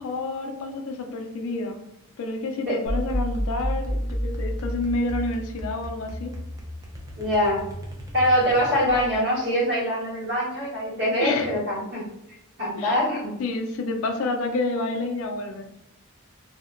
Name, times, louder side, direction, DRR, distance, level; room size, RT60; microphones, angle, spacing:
voice 1, 0.0-1.8 2.2-6.3 11.2-11.5 12.8-13.0 13.4-15.8, left 2 dB, 65° left, 5 dB, 0.3 m, -29 dB
sound 1, 2.9-9.2, equal, 15° right, 0.3 m, -31 dB
voice 2, 7.2-7.6 8.1-12.0 12.6-13.3, equal, 50° right, -8 dB, 1.4 m, -23 dB
2.7 x 2.1 x 2.4 m, 0.83 s
head